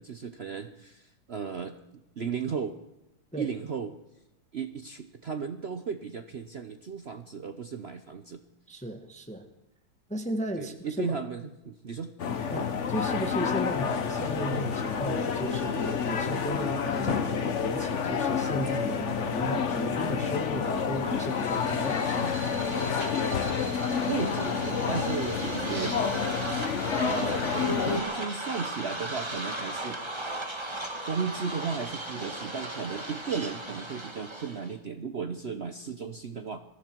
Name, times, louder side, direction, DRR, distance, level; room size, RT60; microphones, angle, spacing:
voice 1, 0.0-1.8 2.2-2.8 3.4-4.0 4.5-8.4 10.6-12.1 24.1-26.0 26.9-30.0 31.1-36.6, right 5 dB, 80° right, 8 dB, 0.5 m, -35 dB
voice 2, 8.7-9.5 10.1-11.2 12.5-22.4, right 1 dB, 5° left, 6 dB, 0.8 m, -35 dB
sound 1, 12.2-28.0, left 6 dB, 45° left, 1.1 m, -29 dB
sound 2, 21.2-34.7, right 1 dB, 15° right, 1.5 m, -37 dB
21.5 x 14.5 x 4.6 m, 0.92 s
omnidirectional pair, 2.3 m